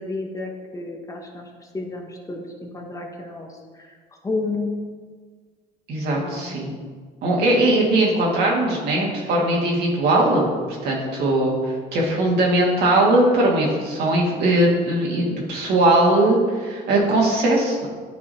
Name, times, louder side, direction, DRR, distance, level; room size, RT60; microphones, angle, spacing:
voice 1, 0.0-4.0 4.2-4.8 6.1-6.6, left 3 dB, 20° left, 1 dB, 1.0 m, -31 dB
voice 2, 5.9-6.8 7.2-10.6 10.8-17.9, right 1 dB, 75° right, -3 dB, 1.9 m, -20 dB
11.0 x 4.8 x 2.8 m, 1.5 s
cardioid pair, 110°, 17 cm